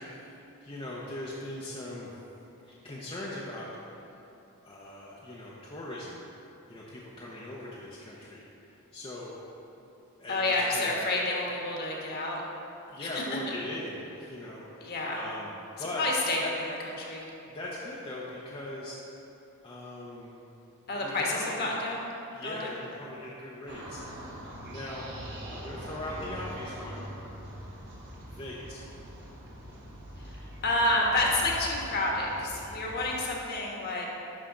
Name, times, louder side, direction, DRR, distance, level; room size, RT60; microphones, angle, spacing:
voice 1, 0.0-3.7 4.0-4.1 4.6-6.2 6.7-9.4 10.2-10.9 12.9-15.5 15.8-16.0 16.4-16.5 17.5-19.0 19.6-20.4 20.9-21.6 22.3-24.0 24.3-24.4 24.6-25.1 25.5-27.0 28.2-28.8, left 1 dB, 25° left, -6 dB, 0.7 m, -40 dB
voice 2, 10.3-12.4 13.0-13.1 14.8-15.2 15.8-17.3 20.9-22.1 22.4-22.7 30.2-30.4 30.6-34.0, left 2 dB, 45° left, -2 dB, 1.3 m, -29 dB
sound 1, 23.7-33.2, equal, 50° right, 1.4 m, -43 dB
11.5 x 5.7 x 3.8 m, 3.0 s
head